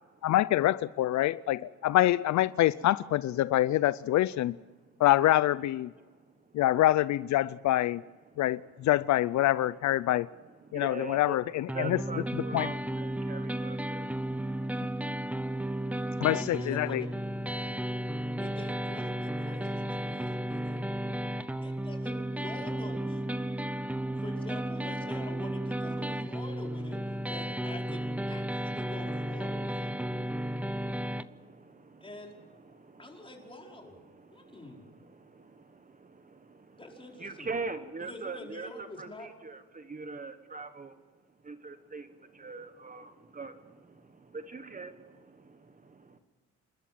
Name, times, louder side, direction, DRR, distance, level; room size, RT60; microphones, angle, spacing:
voice 1, 0.2-4.6 5.0-5.9 6.5-8.0 8.4-10.3 10.7-12.0 12.5-12.7 16.2-17.0, left 14 dB, 70° left, 0.5 m, -26 dB
voice 2, 10.6-14.4 20.0-22.0 23.3-24.2 26.2-26.4 27.1-27.3 28.4-28.8 29.5-33.5 34.0-36.8 37.2-41.0 41.4-46.2, right 4 dB, 25° right, 1.3 m, -44 dB
sound 1, 11.7-31.2, right 1 dB, 5° right, 0.7 m, -34 dB
voice 3, 16.3-17.1 18.4-20.8 21.6-23.3 24.2-27.0 27.3-29.9 32.0-32.3 33.0-34.0 34.3-34.8 36.8-37.5 38.0-39.3, left 1 dB, 15° left, 5.1 m, -46 dB
28.0 x 13.0 x 7.6 m
cardioid pair, 90°, 30 cm